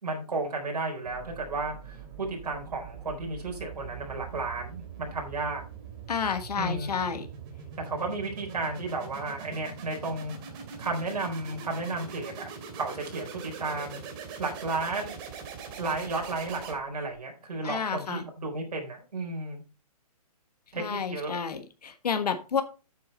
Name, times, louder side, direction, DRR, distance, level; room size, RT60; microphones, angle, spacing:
voice 1, 0.0-5.6 6.6-7.0 7.8-10.3 10.8-14.0 14.4-15.2 15.8-19.6 20.7-21.4, right 3 dB, 85° right, 1 dB, 4.0 m, -33 dB
sound 1, 1.0-17.2, right 6 dB, 35° right, 2.7 m, -43 dB
voice 2, 6.1-7.3 17.6-18.2 20.8-22.6, left 6 dB, 80° left, 8 dB, 1.5 m, -30 dB
8.7 x 8.4 x 4.1 m, 0.32 s
hypercardioid pair, 145°, 20 cm